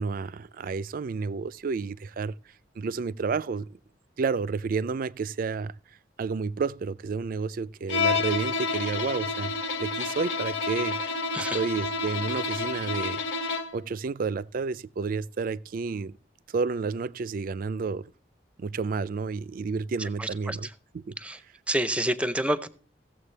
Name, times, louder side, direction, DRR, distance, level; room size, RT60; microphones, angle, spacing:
voice 1, 0.0-2.3 2.8-3.7 4.2-5.7 6.2-9.5 9.8-11.2 11.5-13.2 13.7-16.2 16.5-18.1 18.6-21.1, right 4 dB, 50° right, 0.4 m, -30 dB
Bowed string instrument, 7.9-13.8, left 4 dB, 80° left, 0.9 m, -29 dB
voice 2, 20.2-20.6 21.2-21.4 21.7-22.7, right 1 dB, 5° right, 0.6 m, -28 dB
16.0 x 7.4 x 3.3 m
head